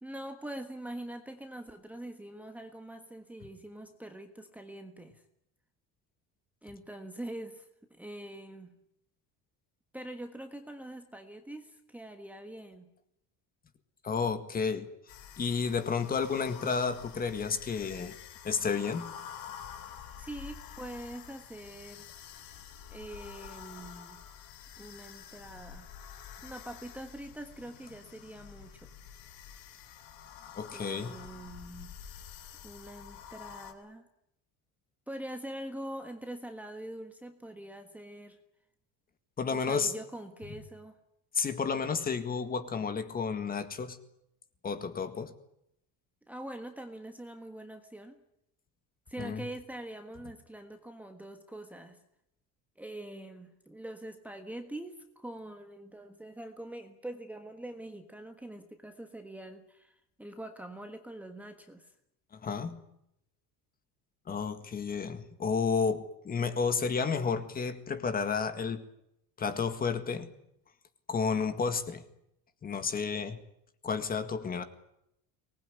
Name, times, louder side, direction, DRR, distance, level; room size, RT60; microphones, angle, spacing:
voice 1, 0.0-5.2 6.6-8.7 9.9-12.9 20.2-22.5 22.9-24.2 24.8-25.9 26.4-28.9 30.7-31.9 32.6-34.1 35.1-38.4 39.4-41.0 46.3-48.2 49.1-52.0 52.8-61.9, right 1 dB, 5° right, 6 dB, 1.4 m, -44 dB
voice 2, 14.0-14.9 15.4-18.1 18.4-19.1 30.6-31.1 39.4-39.9 41.3-44.0 44.6-45.3 49.2-49.4 62.3-62.8 64.3-68.8 69.4-70.3 71.1-72.0 72.6-73.4 73.8-74.6, left 5 dB, 25° left, 9 dB, 1.9 m, -31 dB
sound 1, 15.1-33.7, left 8 dB, 70° left, 4.0 m, -48 dB
24.5 x 20.0 x 9.7 m, 0.79 s
cardioid pair, 175°, 37 cm